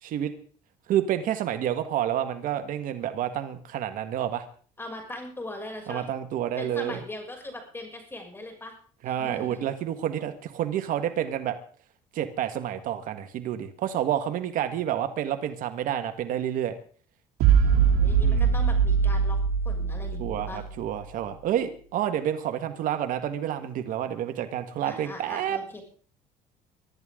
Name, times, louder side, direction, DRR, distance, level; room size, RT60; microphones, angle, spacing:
voice 1, 0.0-0.3 0.9-4.4 5.9-7.0 9.0-11.6 12.1-16.7 18.2-18.5 20.2-25.6, right 10 dB, 65° right, 9 dB, 1.7 m, -29 dB
voice 2, 4.8-6.1 6.6-8.7 9.2-9.6 17.7-19.4 19.6-20.6 24.8-25.8, left 1 dB, 15° left, 3 dB, 6.8 m, -40 dB
sound 1, 17.4-20.8, right 6 dB, 80° right, 3.2 m, -22 dB
23.5 x 13.0 x 3.8 m, 0.43 s
cardioid pair, 105°, 15 cm